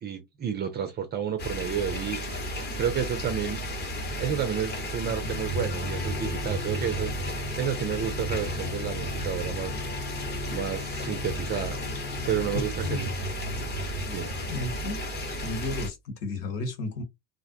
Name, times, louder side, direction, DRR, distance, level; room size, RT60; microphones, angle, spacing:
voice 1, 0.0-3.6 4.2-9.7 10.5-11.8 12.3-13.2 14.0-14.3, right 8 dB, 20° right, 0.5 m, -31 dB
sound 1, 1.4-15.9, equal, 20° left, 0.9 m, -33 dB
sound 2, 5.3-12.7, left 4 dB, 50° left, 0.8 m, -40 dB
voice 2, 12.5-13.1 14.5-15.0 15.3-17.0, left 2 dB, 70° left, 1.4 m, -33 dB
2.5 x 2.1 x 2.6 m
hypercardioid pair, 90°, 49 cm